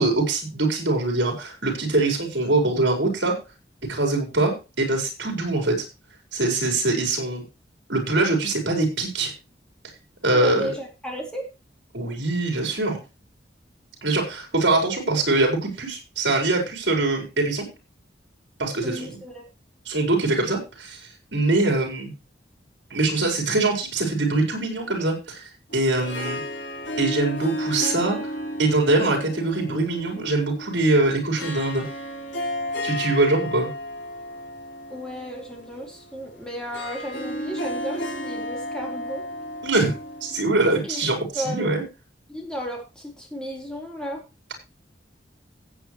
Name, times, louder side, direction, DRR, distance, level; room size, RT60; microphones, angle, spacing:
voice 1, 0.0-3.3 3.9-5.8 6.3-7.4 7.9-9.3 10.2-10.7 11.9-13.0 14.0-17.6 18.6-19.2 19.8-22.1 22.9-26.4 27.0-28.2 28.6-31.8 32.8-33.7 39.6-39.9 40.2-41.8, right 2 dB, 75° right, 2 dB, 5.0 m, -23 dB
voice 2, 10.3-11.5 18.8-19.4 34.9-39.2 40.9-41.0 41.3-41.8 42.3-44.2, equal, 5° left, -1 dB, 4.0 m, -34 dB
Harp, 25.7-41.0, equal, 75° left, 4.3 m, -33 dB
17.0 x 8.4 x 3.2 m, 0.28 s
head